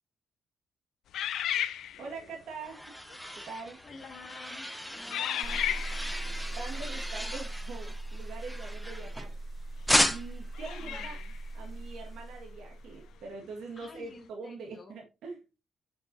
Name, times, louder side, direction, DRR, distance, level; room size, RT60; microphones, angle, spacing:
sound 1, 1.1-2.3 3.1-3.3 4.0-4.3 5.1-6.2 8.9-9.0 10.5-11.4, left 11 dB, 80° left, 0.5 m, -34 dB
voice 1, 2.0-2.8 3.3-3.8 6.5-9.3 10.1-11.2 11.5-15.6, right 4 dB, 85° right, 0 dB, 1.7 m, -43 dB
sound 2, 2.1-9.5 9.9-10.5, equal, ahead, 0.8 m, -34 dB
voice 2, 3.8-5.6 10.8-11.3 13.8-15.0, left 4 dB, 35° left, 5 dB, 1.7 m, -49 dB
sound 3, 5.4-13.2, right 2 dB, 30° right, 0.4 m, -40 dB
7.8 x 5.9 x 2.7 m, 0.27 s
cardioid pair, 140°, 0 cm